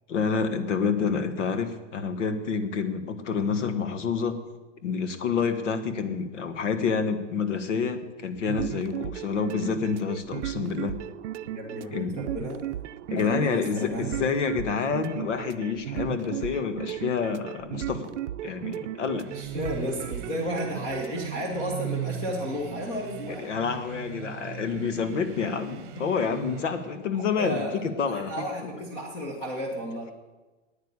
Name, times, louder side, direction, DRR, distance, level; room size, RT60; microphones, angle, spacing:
voice 1, 0.1-4.4 4.8-10.9 11.9-12.2 13.1-18.1 18.4-19.3 23.4-28.3, left 5 dB, 70° left, 9 dB, 1.6 m, -28 dB
sound 1, 8.3-21.3, right 12 dB, 70° right, 0.6 m, -35 dB
voice 2, 11.4-12.6 13.1-14.2 19.3-23.5 27.1-30.1, equal, 20° left, -1 dB, 1.5 m, -33 dB
sound 2, 19.2-27.0, right 10 dB, 45° right, 1.2 m, -39 dB
9.8 x 9.3 x 9.6 m, 1.2 s
hypercardioid pair, 165°, 37 cm